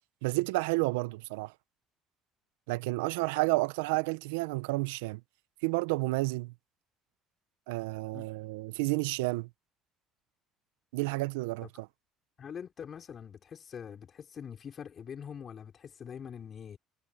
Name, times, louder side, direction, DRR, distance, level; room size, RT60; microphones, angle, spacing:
voice 1, 0.2-1.5 2.7-5.2 5.6-6.5 7.7-9.5 10.9-11.9, right 23 dB, 80° right, 1.2 m, -31 dB
voice 2, 12.4-16.8, left 7 dB, 45° left, 4.6 m, -44 dB
hypercardioid pair, 65°, 0 cm